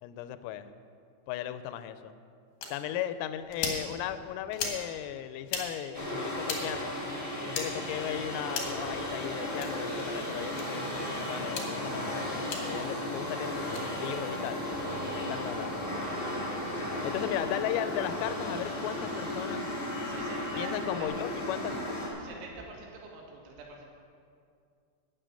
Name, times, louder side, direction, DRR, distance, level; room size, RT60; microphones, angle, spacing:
voice 1, 0.0-0.7 1.3-2.1 2.7-7.0 7.5-12.4 12.6-14.6 15.1-15.8 17.0-19.7 20.6-21.8, left 11 dB, 85° left, 12 dB, 3.2 m, -36 dB
sound 1, 2.6-2.7 3.5-3.8 4.5-4.8 5.4-5.6 6.4-6.6 7.5-7.7 8.5-8.8 9.5-9.7 10.5-10.7 11.5-11.7 12.5-12.6 13.6-13.8, left 5 dB, 70° left, 1.8 m, -35 dB
sound 2, 5.9-22.1, left 1 dB, 20° left, 1.3 m, -35 dB
voice 2, 16.8-17.4 20.0-21.1 21.7-21.9 22.2-23.9, right 3 dB, 90° right, -1 dB, 4.5 m, -46 dB
10.0 x 6.8 x 9.0 m, 2.3 s
omnidirectional pair, 5.9 m